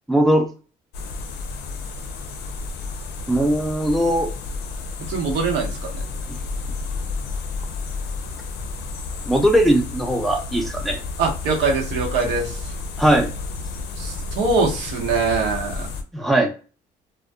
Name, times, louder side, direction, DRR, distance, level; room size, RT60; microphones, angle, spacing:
voice 1, 0.1-0.5 3.3-4.3 9.3-11.0 13.0-13.3 16.1-16.5, right 1 dB, ahead, 1 dB, 0.5 m, -19 dB
sound 1, 0.9-16.0, left 3 dB, 85° left, 0.5 m, -31 dB
voice 2, 5.1-5.7 11.2-12.6 14.0-15.9, right 4 dB, 90° right, 0 dB, 0.9 m, -22 dB
2.6 x 2.2 x 2.2 m, 0.35 s
cardioid pair, 110°, 17 cm